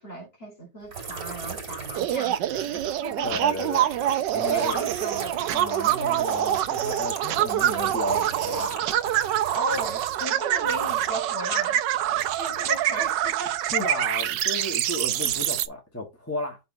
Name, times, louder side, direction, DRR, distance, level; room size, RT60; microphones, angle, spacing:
voice 1, 0.0-3.3 4.3-5.5 9.5-11.8 12.4-13.6, equal, 30° left, 3.1 m, -36 dB
sound 1, 0.9-11.3 11.5-14.1 14.6-15.4, right 5 dB, 60° right, 2.9 m, -40 dB
sound 2, 1.9-15.7, right 12 dB, 80° right, 1.3 m, -25 dB
voice 2, 3.2-3.9 4.3-4.8 5.5-8.9 13.6-16.6, left 1 dB, 10° left, 1.7 m, -33 dB
5.5 x 4.2 x 5.1 m
omnidirectional pair, 1.9 m